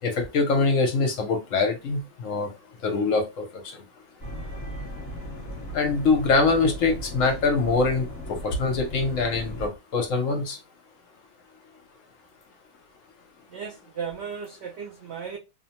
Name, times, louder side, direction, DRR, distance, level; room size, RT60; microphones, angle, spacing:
voice 1, 0.0-3.8 5.7-10.6, left 4 dB, 65° left, 0.9 m, -24 dB
sound 1, 4.2-9.7, equal, 25° left, 1.2 m, -37 dB
voice 2, 13.5-15.4, right 6 dB, 75° right, 0.5 m, -35 dB
2.7 x 2.0 x 2.8 m
omnidirectional pair, 1.6 m